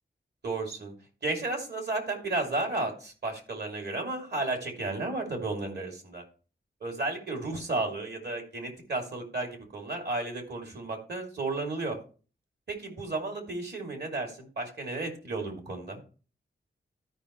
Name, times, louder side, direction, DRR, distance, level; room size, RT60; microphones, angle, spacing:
voice 1, 0.4-0.9 1.2-6.2 6.8-12.0 12.7-16.0, right 2 dB, 60° right, 2 dB, 2.9 m, -33 dB
13.5 x 5.6 x 3.2 m, 0.37 s
wide cardioid pair, 80°, 19 cm